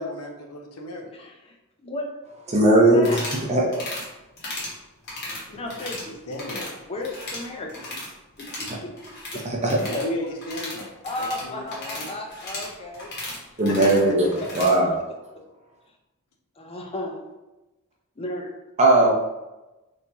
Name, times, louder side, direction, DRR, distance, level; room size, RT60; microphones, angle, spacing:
voice 1, 0.0-1.1 5.2-5.7 6.3-6.8 9.7-10.9 11.2-12.2 13.7-14.1, left 1 dB, 70° left, 2 dB, 0.6 m, -34 dB
voice 2, 1.1-2.2 2.7-3.2 5.5-6.1 6.9-8.0 8.4-8.9 9.3-9.4 11.0-13.1 16.6-17.2 18.2-18.5, left 2 dB, 25° left, 1 dB, 0.5 m, -34 dB
voice 3, 2.5-3.2 3.5-3.6 9.4-9.8 13.6-14.3 14.5-14.9 18.8-19.1, right 2 dB, 30° right, -2 dB, 0.6 m, -18 dB
sound 1, 3.0-3.4 3.7-4.1 4.4-4.7 5.0-6.1 6.3-6.7 7.0-8.1 8.4-14.8, left 2 dB, 50° left, 1.1 m, -35 dB
3.1 x 2.7 x 3.4 m, 1.0 s
head